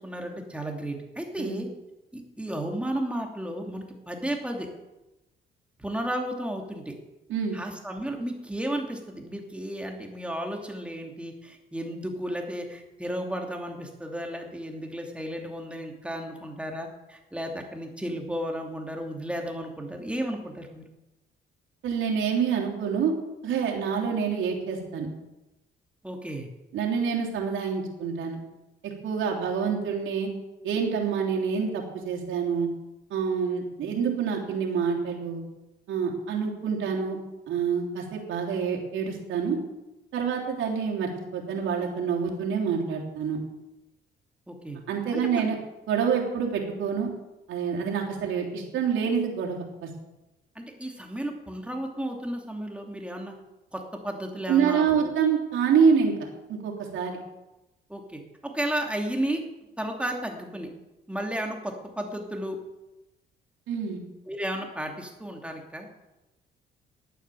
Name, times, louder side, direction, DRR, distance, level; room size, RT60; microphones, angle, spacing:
voice 1, 0.0-1.7 2.1-4.7 5.8-6.9 7.5-20.8 26.0-26.5 44.5-44.8 45.1-45.4 50.5-53.3 53.7-55.1 57.9-59.4 59.8-60.7 61.1-62.6 64.3-65.9, right 1 dB, 5° right, 2 dB, 2.7 m, -33 dB
voice 2, 21.8-23.1 23.4-25.1 26.7-28.4 28.8-30.3 30.6-32.7 33.1-35.5 35.9-37.2 37.5-39.6 40.1-43.4 44.9-45.5 45.9-47.1 47.5-49.9 54.5-56.1 56.5-57.2 63.7-64.0, right 6 dB, 80° right, -1 dB, 3.3 m, -27 dB
11.5 x 9.3 x 7.7 m, 1.0 s
cardioid pair, 90°, 20 cm